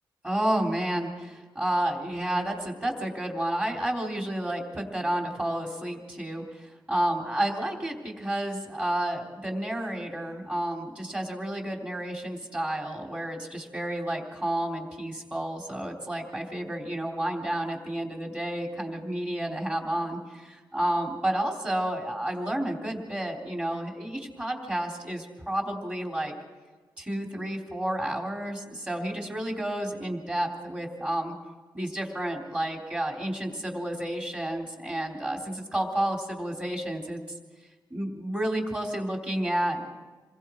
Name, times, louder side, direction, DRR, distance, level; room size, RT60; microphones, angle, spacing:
voice 1, 0.2-26.3 27.0-31.3 31.7-37.2 37.9-39.9, right 1 dB, 15° right, 0 dB, 3.7 m, -31 dB
28.0 x 21.5 x 4.7 m, 1.3 s
wide cardioid pair, 170°, 8 cm